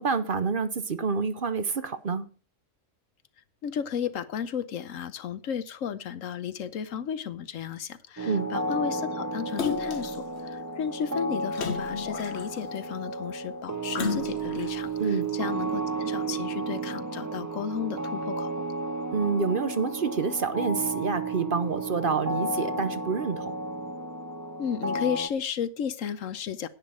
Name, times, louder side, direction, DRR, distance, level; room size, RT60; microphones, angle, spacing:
voice 1, 0.0-2.3 8.2-8.5 15.0-15.3 19.1-23.6, right 5 dB, 45° right, 1.0 m, -28 dB
voice 2, 3.6-18.5 24.6-26.7, left 8 dB, 85° left, 1.2 m, -33 dB
sound 1, 8.2-25.3, right 2 dB, 20° right, 0.6 m, -32 dB
Splash splatter, 9.6-10.2 11.5-12.8 13.9-14.7 15.3-15.4, left 6 dB, 60° left, 1.3 m, -32 dB
10.5 x 9.3 x 4.9 m
omnidirectional pair, 1.3 m